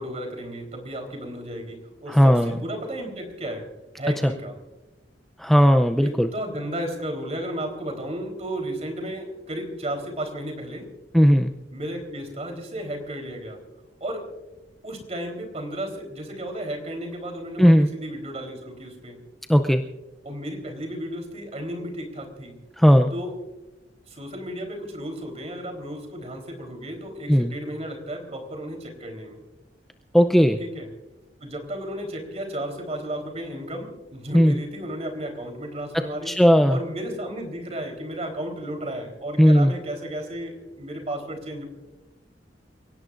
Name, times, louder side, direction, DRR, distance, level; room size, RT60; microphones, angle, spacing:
voice 1, 0.0-3.7 4.0-4.6 6.0-10.9 11.7-13.6 14.0-14.3 14.8-19.2 20.2-22.5 23.1-23.3 24.1-29.4 30.6-30.9 31.4-36.4 36.7-41.6, right 1 dB, 35° right, 4 dB, 3.9 m, -33 dB
voice 2, 2.1-2.6 5.4-6.3 11.1-11.5 17.6-17.9 19.5-19.8 22.8-23.1 27.3-27.5 30.1-30.6 34.3-34.5 35.9-36.8 39.4-39.7, equal, ahead, 6 dB, 0.5 m, -17 dB
29.0 x 17.5 x 2.6 m, 1.1 s
head